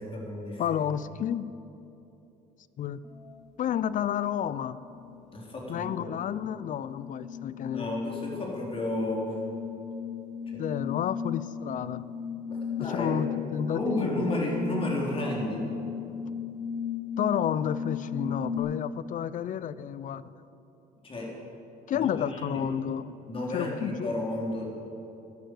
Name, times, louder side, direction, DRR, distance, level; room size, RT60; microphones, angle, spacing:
voice 1, 0.0-0.6 5.3-6.0 7.7-9.3 10.5-10.6 12.5-13.2 13.7-15.6 21.0-21.3 21.9-22.6 23.3-24.6, left 1 dB, 35° left, -3 dB, 3.9 m, -32 dB
voice 2, 0.6-1.5 2.8-3.0 3.6-4.8 5.7-8.0 10.6-12.1 12.8-14.3 17.2-20.2 21.9-23.1 23.5-24.1, left 9 dB, 50° left, 17 dB, 0.5 m, -31 dB
sound 1, 3.0-3.4 3.8-18.6, left 7 dB, ahead, 2.6 m, -36 dB
12.0 x 11.5 x 8.0 m, 2.9 s
cardioid pair, 110°, 17 cm